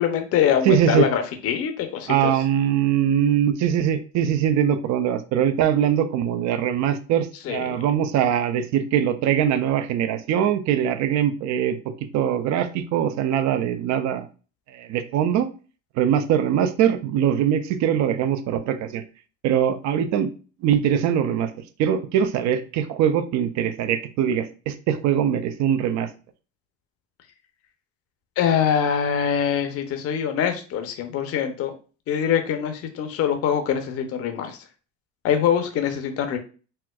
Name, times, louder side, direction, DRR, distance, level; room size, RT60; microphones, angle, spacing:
voice 1, 0.0-2.3 7.4-7.8 19.9-20.0 28.4-31.7 32.1-34.6 35.2-36.4, left 8 dB, 45° left, 6 dB, 0.6 m, -24 dB
voice 2, 0.7-1.1 2.1-14.3 14.7-15.5 16.0-19.0 19.4-20.3 20.6-21.5 21.8-26.1, right 9 dB, 55° right, 10 dB, 0.5 m, -22 dB
4.3 x 2.3 x 2.3 m, 0.36 s
supercardioid pair, 110°, 34 cm